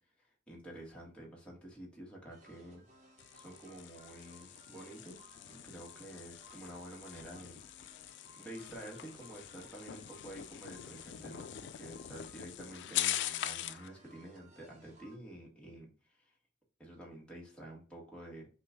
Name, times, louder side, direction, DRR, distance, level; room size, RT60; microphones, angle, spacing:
voice 1, 0.2-2.8 3.3-7.6 8.4-16.3 16.8-18.5, right 1 dB, 5° left, -4 dB, 1.6 m, -49 dB
sound 1, 2.3-15.1, right 2 dB, 40° right, 1.2 m, -61 dB
sound 2, 3.2-13.9, left 12 dB, 80° left, 0.3 m, -42 dB
5.8 x 2.5 x 3.6 m, 0.40 s
head